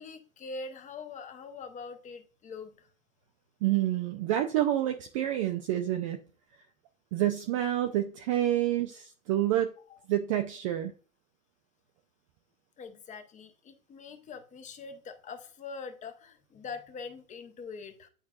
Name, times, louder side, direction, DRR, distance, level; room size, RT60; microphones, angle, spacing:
voice 1, 0.0-2.9 9.9-10.0 12.8-18.1, left 4 dB, 20° left, 0.8 m, -43 dB
voice 2, 3.6-6.2 7.1-9.7 10.1-10.9, right 12 dB, 25° right, 0.4 m, -28 dB
8.9 x 4.5 x 2.4 m
figure-of-eight pair, 100°, 40 cm